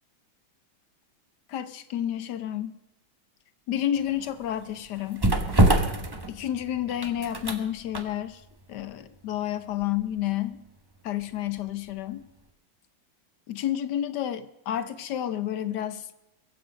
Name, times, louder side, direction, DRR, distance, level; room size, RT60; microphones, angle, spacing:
voice 1, 1.5-2.7 3.7-5.2 6.3-8.4 8.7-10.6 11.0-12.2 13.5-16.1, left 11 dB, 65° left, 12 dB, 1.3 m, -30 dB
sound 1, 4.0-11.9 12.2-12.4, right 1 dB, 20° right, 0.7 m, -28 dB
22.0 x 8.0 x 5.2 m, 0.89 s
omnidirectional pair, 2.1 m